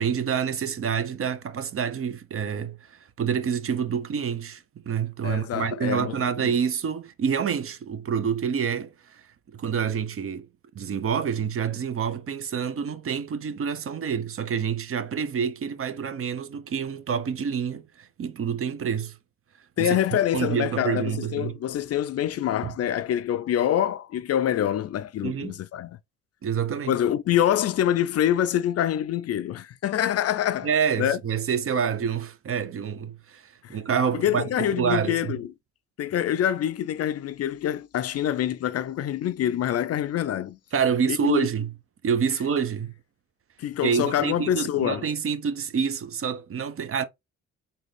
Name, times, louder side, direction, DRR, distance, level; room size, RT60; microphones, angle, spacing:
voice 1, 0.0-2.9 3.2-9.2 9.5-10.5 10.7-19.2 19.8-20.0 20.3-21.6 22.6-22.7 25.2-25.6 26.4-26.9 30.6-35.3 40.7-41.7 42.0-42.9 43.8-47.0, right 7 dB, 45° right, 0.7 m, -27 dB
voice 2, 5.2-6.2 6.4-6.5 19.8-26.0 26.9-30.7 31.0-31.2 33.6-33.8 34.1-35.5 36.0-40.6 41.1-41.5 43.6-45.0, left 11 dB, 55° left, 0.5 m, -25 dB
3.8 x 2.8 x 3.2 m
cardioid pair, 90°, 30 cm